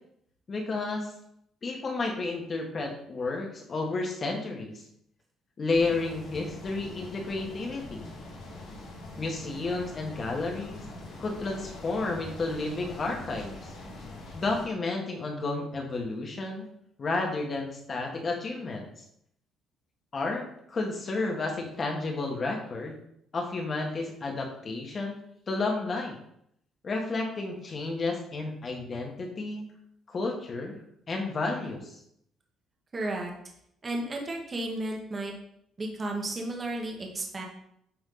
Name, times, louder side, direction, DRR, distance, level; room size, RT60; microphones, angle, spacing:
voice 1, 0.5-1.1 1.6-4.8 5.6-8.1 9.2-10.9 11.2-13.7 14.3-16.7 17.0-18.9 20.1-23.0 23.3-25.2 25.5-26.2 26.8-29.6 30.1-30.8 31.1-31.9, left 3 dB, 35° left, 1 dB, 1.5 m, -31 dB
sound 1, 5.7-14.7, left 2 dB, 80° left, 2.6 m, -43 dB
voice 2, 32.9-33.3 33.8-35.3 35.8-37.4, right 2 dB, 25° right, 1 dB, 1.2 m, -33 dB
8.7 x 3.6 x 3.9 m, 0.73 s
cardioid pair, 120°, 0 cm